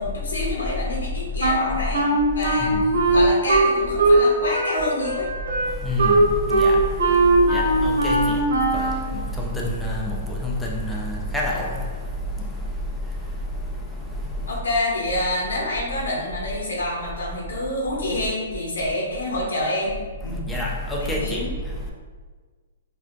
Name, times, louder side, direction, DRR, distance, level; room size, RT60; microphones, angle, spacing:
voice 1, 0.0-2.8 3.1-5.3 8.2-8.6 14.5-20.0 20.2-20.5 21.0-21.5, left 1 dB, 85° left, -3 dB, 0.7 m, -27 dB
Wind instrument woodwind instrument, 1.4-4.3 4.5-9.0, right 2 dB, 75° right, 1.0 m, -19 dB
voice 2, 2.6-3.2 5.6-14.6 20.2-21.9, equal, 5° left, -3 dB, 0.6 m, -28 dB
4.2 x 2.3 x 2.5 m, 1.5 s
hypercardioid pair, 135°, 0 cm